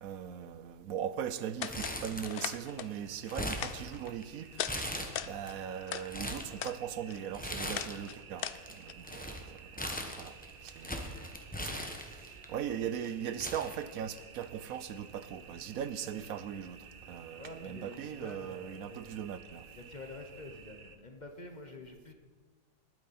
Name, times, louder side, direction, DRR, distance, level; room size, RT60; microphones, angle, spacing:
voice 1, 0.0-4.8 5.2-8.5 8.8-9.4 10.2-10.3 10.8-11.2 11.6-11.7 12.5-16.8 17.1-19.6, right 9 dB, 75° right, 1.0 m, -39 dB
sound 1, 1.6-2.0 2.2-2.9 3.3-4.1 4.5-4.8 5.0-6.1 6.5-6.8 7.1-8.9, left 10 dB, 90° left, 0.5 m, -39 dB
Crumpling crinkling, 1.7-2.7 3.0-4.2 4.7-5.5 5.9-6.5 7.3-8.1 8.4-12.5 13.0-13.1 13.4-14.4 14.8-14.9 15.8-16.1, left 1 dB, 5° left, 1.0 m, -39 dB
sound 2, 2.4-21.0, right 6 dB, 45° right, 0.8 m, -53 dB
voice 2, 17.3-19.0 19.7-22.1, left 2 dB, 35° left, 1.0 m, -48 dB
20.0 x 9.3 x 4.2 m
omnidirectional pair, 1.6 m